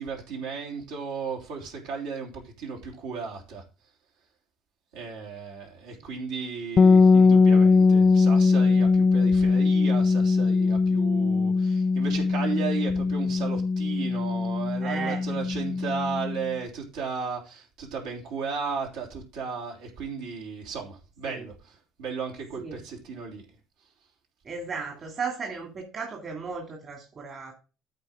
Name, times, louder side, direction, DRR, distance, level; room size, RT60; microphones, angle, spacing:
voice 1, 0.0-3.6 4.9-23.4, right 5 dB, 75° right, -1 dB, 3.4 m, -35 dB
sound 1, 6.8-16.5, left 4 dB, 35° left, 0.4 m, -21 dB
voice 2, 14.8-15.4 21.3-21.4 22.6-22.8 24.4-27.5, right 5 dB, 40° right, 2 dB, 2.5 m, -35 dB
14.0 x 4.8 x 3.7 m, 0.33 s
hypercardioid pair, 60°, 0 cm